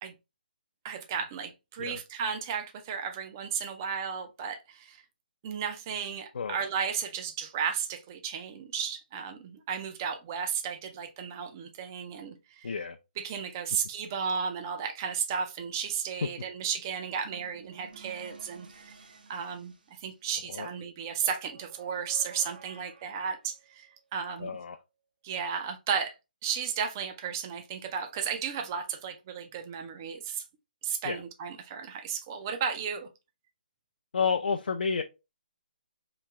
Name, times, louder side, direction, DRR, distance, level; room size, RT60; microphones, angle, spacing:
voice 1, 0.8-5.0 5.4-12.7 13.2-18.9 19.3-19.7 20.0-24.5 25.2-26.1 26.4-30.4 30.8-33.1, right 7 dB, 20° right, 0.3 m, -34 dB
voice 2, 12.6-13.0 20.5-20.7 24.4-24.8 31.0-31.2 34.1-35.0, left 5 dB, 75° left, 0.4 m, -30 dB
sound 1, 17.2-20.3 21.2-24.1, right 4 dB, 65° right, 0.7 m, -52 dB
3.0 x 2.8 x 3.4 m
hypercardioid pair, 170°, 5 cm